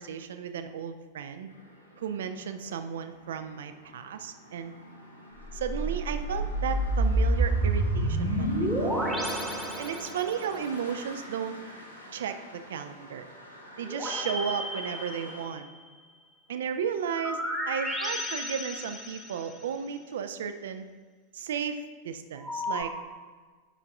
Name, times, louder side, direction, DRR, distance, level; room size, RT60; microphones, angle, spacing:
voice 1, 0.0-1.5 2.0-4.8 5.5-8.9 9.8-11.6 12.1-13.3 13.8-15.7 16.5-20.8 21.3-22.9, right 7 dB, 60° right, 9 dB, 0.4 m, -34 dB
sound 1, 1.5-15.5, equal, 90° left, 1.0 m, -47 dB
sound 2, 5.5-10.5 13.9-15.7 17.1-19.7 22.4-22.8, right 1 dB, 5° left, 1.0 m, -30 dB
10.0 x 5.7 x 2.4 m, 1.4 s
figure-of-eight pair, 90°, 0 cm